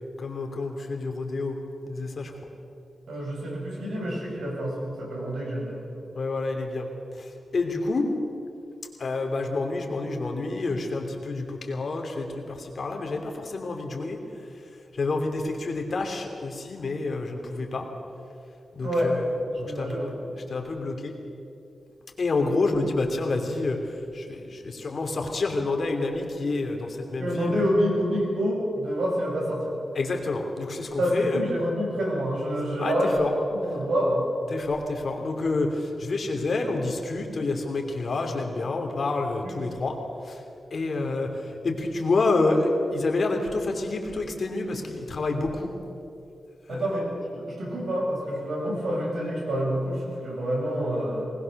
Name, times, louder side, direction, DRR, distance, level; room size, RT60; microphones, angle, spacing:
voice 1, 0.2-1.6 1.9-2.3 6.1-6.9 7.2-8.1 9.0-14.2 15.0-17.9 18.7-19.2 19.6-20.2 20.5-21.1 22.2-23.8 24.1-27.7 29.9-31.4 32.8-33.3 34.5-40.0 40.2-40.4 40.7-45.7 46.7-46.8, left 3 dB, 55° left, 2 dB, 3.0 m, -28 dB
voice 2, 3.1-5.8 18.8-20.4 27.2-29.8 31.0-34.2 39.4-39.6 46.7-47.1 47.3-51.2, equal, 80° right, -2 dB, 6.9 m, -27 dB
21.5 x 20.0 x 6.7 m, 2.7 s
wide cardioid pair, 105°, 0 cm